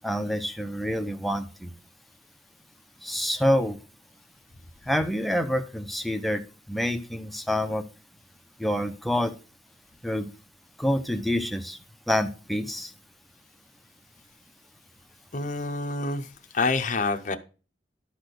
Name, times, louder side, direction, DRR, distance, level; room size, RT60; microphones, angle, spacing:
voice 1, 0.0-1.7 3.0-3.8 4.9-7.8 8.6-9.3 10.0-10.3 10.8-11.8 12.1-12.9, equal, ahead, 7 dB, 0.7 m, -27 dB
voice 2, 15.3-16.3 16.5-17.4, left 3 dB, 45° left, 5 dB, 0.7 m, -27 dB
11.5 x 4.2 x 6.5 m, 0.35 s
head